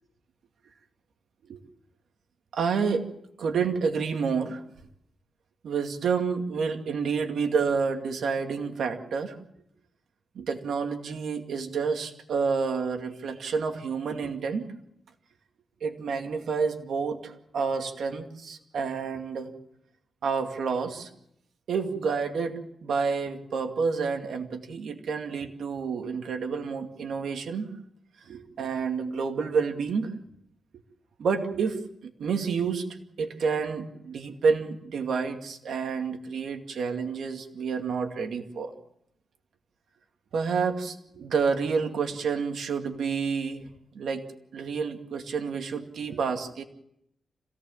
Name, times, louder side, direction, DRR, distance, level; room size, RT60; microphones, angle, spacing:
voice 1, 2.5-3.1 3.4-4.6 5.6-9.4 10.3-14.7 15.8-19.5 20.2-21.1 21.7-27.7 28.2-30.2 31.2-38.7 40.3-43.7 43.9-44.2 44.5-46.6, right 5 dB, 70° right, 5 dB, 2.3 m, -29 dB
27.0 x 17.5 x 7.3 m, 0.76 s
wide cardioid pair, 170°, 0 cm